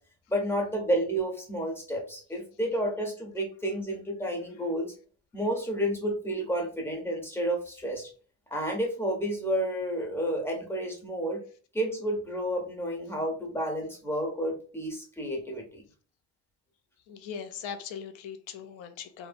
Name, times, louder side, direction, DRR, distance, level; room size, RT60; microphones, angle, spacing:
voice 1, 0.3-4.9 5.3-8.1 8.5-11.4 11.7-15.8, equal, 5° left, 0.5 m, -30 dB
voice 2, 17.1-19.3, left 7 dB, 90° left, 0.5 m, -40 dB
2.9 x 2.1 x 2.4 m
cardioid pair, 155°, 46 cm